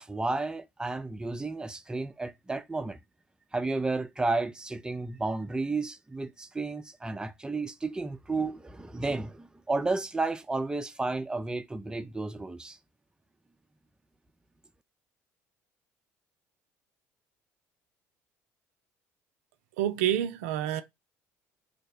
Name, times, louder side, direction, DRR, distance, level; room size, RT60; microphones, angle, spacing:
voice 1, 0.0-3.0 3.5-12.8, right 3 dB, 10° right, 0.4 m, -32 dB
voice 2, 19.8-20.8, right 11 dB, 75° right, 0.3 m, -28 dB
2.8 x 2.1 x 4.0 m
hypercardioid pair, 60°, 8 cm